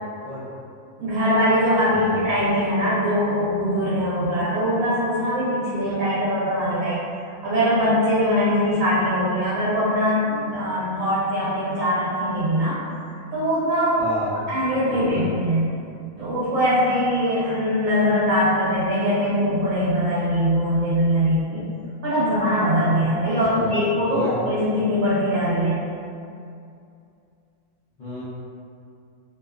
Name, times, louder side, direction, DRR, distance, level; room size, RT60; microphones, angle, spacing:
voice 1, 1.0-7.0 7.4-12.8 13.3-14.0 14.5-15.8 16.2-21.7 22.0-25.8, equal, 80° right, -10 dB, 1.0 m, -22 dB
voice 2, 1.9-2.2 14.0-14.4 14.8-15.3 23.5-24.4 28.0-28.2, left 1 dB, 85° left, -13 dB, 0.3 m, -32 dB
2.6 x 2.2 x 2.3 m, 2.5 s
omnidirectional pair, 1.4 m